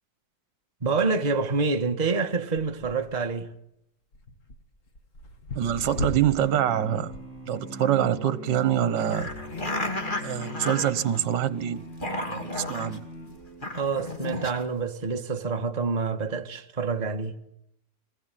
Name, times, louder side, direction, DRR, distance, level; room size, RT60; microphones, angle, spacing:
voice 1, 0.8-3.5 13.8-17.3, right 4 dB, 25° right, 1.6 m, -27 dB
sound 1, 2.5-3.3 4.1-6.6 6.9-7.4 8.5-9.7 10.5-10.6, left 2 dB, 45° left, 2.3 m, -38 dB
sound 2, 5.6-13.9, left 1 dB, 85° left, 8.8 m, -42 dB
voice 2, 5.6-7.1 7.5-9.3 10.2-11.8 12.3-13.0, right 10 dB, 75° right, 1.8 m, -25 dB
sound 3, 9.0-11.4 11.8-13.0 13.5-14.5, left 2 dB, 25° left, 3.0 m, -33 dB
23.0 x 19.5 x 9.2 m
omnidirectional pair, 2.0 m